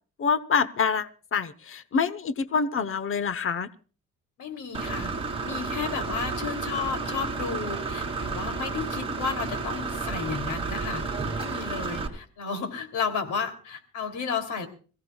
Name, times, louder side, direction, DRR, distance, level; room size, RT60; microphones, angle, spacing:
voice 1, 0.2-3.7, left 5 dB, 45° left, 1.0 m, -26 dB
voice 2, 4.4-5.1 5.4-11.0 11.4-14.7, left 5 dB, 80° left, 3.2 m, -32 dB
Engine / Mechanisms, 4.7-12.1, right 4 dB, 20° right, 3.5 m, -31 dB
26.0 x 16.0 x 2.4 m
cardioid pair, 110°, 30 cm